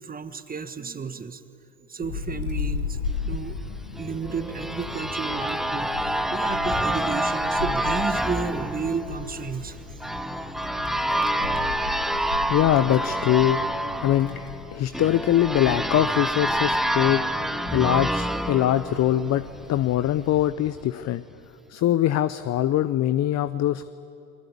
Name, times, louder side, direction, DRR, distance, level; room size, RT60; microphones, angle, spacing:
voice 1, 0.0-1.4 1.9-3.0 3.3-3.6 4.0-9.8 11.4-11.7 14.0-14.1, right 5 dB, 20° right, 11 dB, 1.5 m, -33 dB
Wind, 2.0-20.5, left 5 dB, 85° left, 2.3 m, -37 dB
sound 1, 4.0-19.6, right 1 dB, ahead, 0.9 m, -27 dB
voice 2, 12.5-13.6 14.0-17.2 17.7-21.2 21.7-23.9, left 12 dB, 40° left, 14 dB, 0.7 m, -23 dB
29.0 x 21.0 x 8.6 m, 2.8 s
hypercardioid pair, 70°, 42 cm